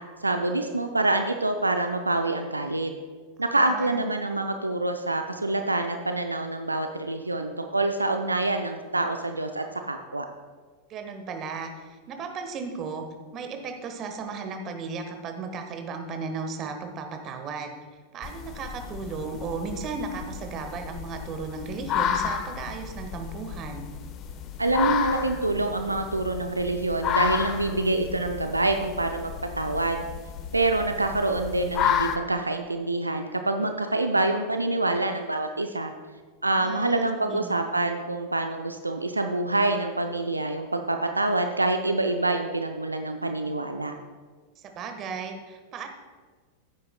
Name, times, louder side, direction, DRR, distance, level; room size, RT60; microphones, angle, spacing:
voice 1, 0.2-2.9 3.4-10.3 24.6-30.0 30.5-35.9 36.4-43.9, right 2 dB, 80° right, 6 dB, 0.5 m, -26 dB
voice 2, 3.5-4.0 10.9-13.0 13.3-17.8 18.1-23.9 36.6-37.5 44.6-45.9, right 4 dB, 30° right, 5 dB, 1.3 m, -35 dB
sound 1, 18.2-32.2, left 8 dB, 35° left, 0.7 m, -32 dB
15.0 x 9.3 x 2.2 m, 1.5 s
figure-of-eight pair, 90°, 0 cm